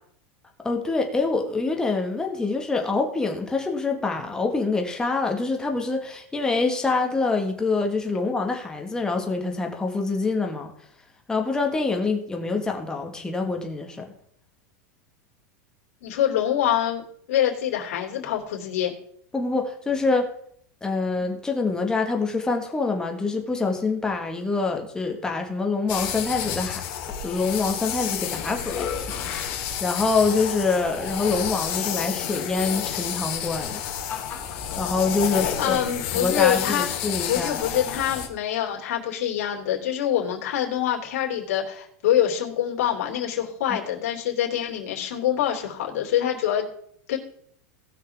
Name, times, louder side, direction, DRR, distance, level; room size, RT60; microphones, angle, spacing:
voice 1, 0.6-10.7 11.3-14.1 19.3-20.3 20.8-26.8 27.2-28.9 29.8-33.8 34.8-35.8 36.1-37.6, left 3 dB, 10° left, 3 dB, 1.7 m, -25 dB
voice 2, 16.0-17.0 17.3-18.9 35.6-37.0 37.3-46.7 47.1-47.2, left 10 dB, 75° left, 1 dB, 3.1 m, -25 dB
sound 1, 25.9-38.3, left 9 dB, 50° left, 2.5 m, -30 dB
sound 2, 27.8-28.3 28.6-30.5 31.3-31.4 33.1-34.8, left 8 dB, 25° left, 1.7 m, -37 dB
18.5 x 6.4 x 3.6 m, 0.67 s
supercardioid pair, 150°, 8 cm